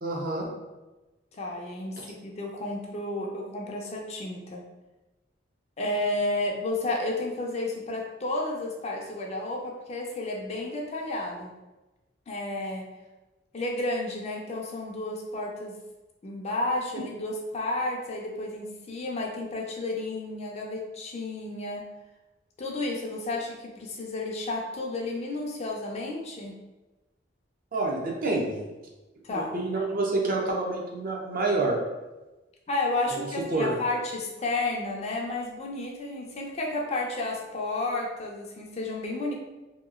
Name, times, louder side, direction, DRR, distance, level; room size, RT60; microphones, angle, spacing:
voice 1, 0.0-0.5 2.0-2.1 27.7-28.6 29.3-31.8 33.1-33.2 33.5-33.7, right 2 dB, 50° right, -1 dB, 0.5 m, -28 dB
voice 2, 1.3-4.6 5.8-11.5 12.3-12.9 13.5-15.8 16.2-21.8 22.6-26.6 29.2-29.5 32.7-39.3, left 2 dB, 35° left, 0 dB, 0.4 m, -32 dB
2.8 x 2.3 x 2.4 m, 1.1 s
head